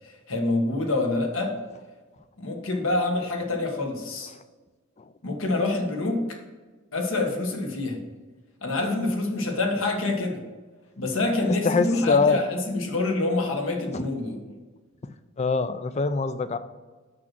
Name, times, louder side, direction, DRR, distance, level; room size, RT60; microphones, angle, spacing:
voice 1, 0.3-1.6 2.4-4.3 5.2-6.2 6.9-8.0 8.6-10.4 11.0-14.4, left 2 dB, 80° left, 2 dB, 1.5 m, -26 dB
voice 2, 11.4-12.4 13.9-14.1 15.4-16.6, left 4 dB, 30° left, 12 dB, 0.4 m, -24 dB
6.2 x 6.1 x 5.9 m, 1.3 s
head